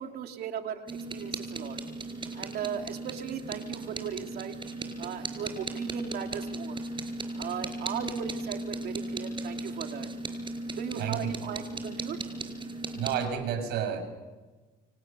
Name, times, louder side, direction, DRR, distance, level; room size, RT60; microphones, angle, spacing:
voice 1, 0.0-1.8 2.3-4.5 5.0-6.8 7.3-10.1 10.8-12.4, right 8 dB, 65° right, 4 dB, 2.9 m, -37 dB
sound 1, 0.9-13.3, right 2 dB, 30° right, 4.9 m, -37 dB
voice 2, 11.0-11.5 12.9-14.0, right 8 dB, 85° right, 8 dB, 6.7 m, -31 dB
29.0 x 27.5 x 6.8 m, 1.2 s
cardioid pair, 110°, 17 cm